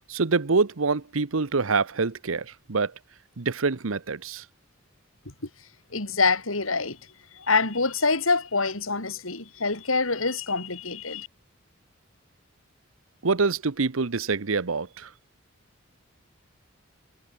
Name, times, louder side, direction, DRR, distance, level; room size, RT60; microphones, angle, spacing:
voice 1, 0.1-2.9 3.4-4.4 13.2-15.1, right 4 dB, 80° right, 0.9 m, -25 dB
voice 2, 5.9-7.0 7.3-11.3, left 4 dB, 85° left, 4.6 m, -25 dB
head